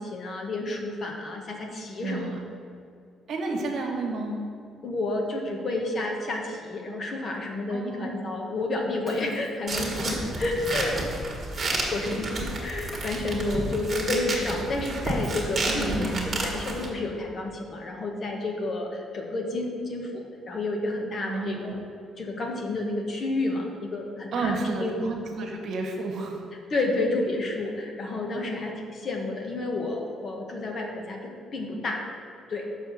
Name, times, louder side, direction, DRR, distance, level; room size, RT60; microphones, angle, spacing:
voice 1, 0.0-2.3 4.8-11.0 11.5-21.8 22.2-25.0 26.7-32.0 32.5-32.7, left 2 dB, 40° left, 1 dB, 1.1 m, -30 dB
voice 2, 2.0-2.4 3.3-4.4 7.7-8.4 15.7-16.4 21.3-21.8 24.3-26.4, right 3 dB, 60° right, 2 dB, 1.2 m, -31 dB
Shatter, 9.0-9.7 11.0-11.5 12.9-13.5 15.2-15.9, equal, 10° left, 1.4 m, -45 dB
sound 1, 9.7-16.9, right 2 dB, 30° right, 1.6 m, -31 dB
6.3 x 4.5 x 6.5 m, 2.5 s
cardioid pair, 125°, 0 cm